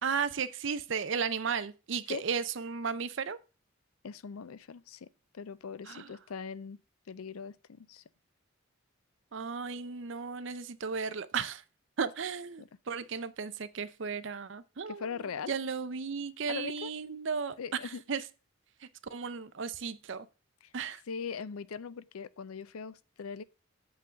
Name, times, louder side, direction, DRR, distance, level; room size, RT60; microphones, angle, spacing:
voice 1, 0.0-3.4 5.9-6.1 9.3-11.6 12.0-15.1 15.5-17.6 17.8-18.2 18.8-20.3 20.7-21.0, right 5 dB, 60° right, 0.6 m, -35 dB
voice 2, 4.0-5.1 5.3-6.8 7.1-8.0 12.6-12.7 14.9-15.5 16.5-16.9 17.6-18.0 20.6-20.7 21.1-23.4, left 6 dB, 85° left, 0.5 m, -40 dB
7.9 x 3.9 x 6.7 m
head